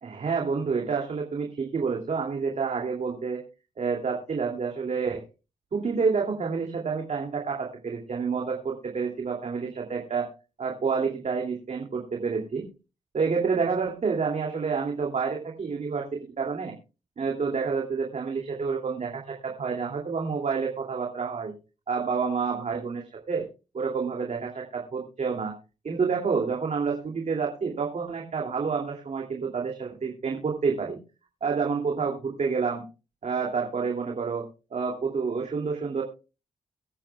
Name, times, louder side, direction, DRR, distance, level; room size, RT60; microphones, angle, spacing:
voice 1, 0.0-3.4 3.8-5.2 5.7-10.3 10.6-12.6 13.1-16.7 17.2-21.5 21.9-23.5 23.7-25.5 25.8-31.0 31.4-32.8 33.2-34.4 34.7-36.0, right 5 dB, 55° right, 0 dB, 2.7 m, -28 dB
23.5 x 8.8 x 2.4 m, 0.32 s
cardioid pair, 55°, 14 cm